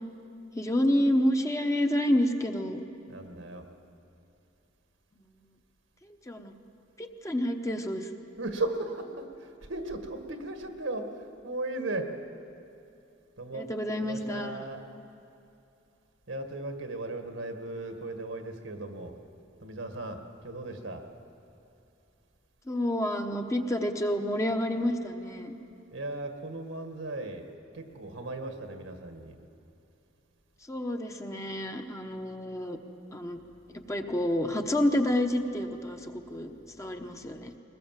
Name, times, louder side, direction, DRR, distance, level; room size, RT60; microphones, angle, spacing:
voice 1, 0.5-2.9 6.0-6.5 7.0-8.1 13.5-14.6 22.7-25.5 30.7-32.8 33.1-33.4 33.9-36.5 36.8-37.5, left 1 dB, 15° left, 4 dB, 1.0 m, -29 dB
voice 2, 3.1-3.7 8.4-12.1 13.4-13.7 14.0-14.8 16.3-19.1 19.6-21.0 25.9-27.5 27.7-29.3, right 2 dB, 75° right, 5 dB, 1.7 m, -36 dB
21.5 x 20.0 x 7.5 m, 2.8 s
head